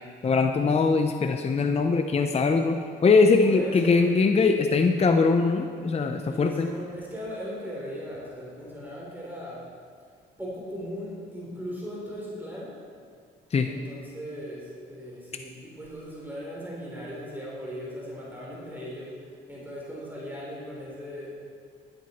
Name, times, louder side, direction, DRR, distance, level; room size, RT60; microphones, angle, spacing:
voice 1, 0.2-6.7 13.5-13.7, left 4 dB, 30° left, 6 dB, 0.7 m, -22 dB
voice 2, 3.4-4.1 6.2-9.6 10.4-12.7 13.6-21.4, equal, 10° right, -5 dB, 3.2 m, -38 dB
13.0 x 9.4 x 4.2 m, 2.1 s
cardioid pair, 90°, 20 cm